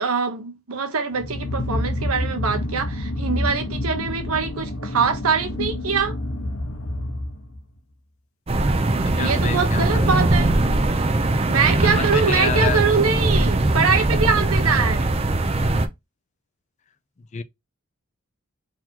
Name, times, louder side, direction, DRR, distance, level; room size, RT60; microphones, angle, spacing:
voice 1, 0.0-6.2 9.2-10.5 11.5-15.0, right 5 dB, 90° right, 1.1 m, -23 dB
sound 1, 1.1-7.7, left 1 dB, 75° left, 1.2 m, -28 dB
sound 2, 8.5-15.9, right 2 dB, 30° right, 0.5 m, -20 dB
voice 2, 9.0-10.4 11.8-12.8 17.3-17.4, left 5 dB, 35° left, 0.4 m, -28 dB
4.5 x 4.0 x 2.9 m
head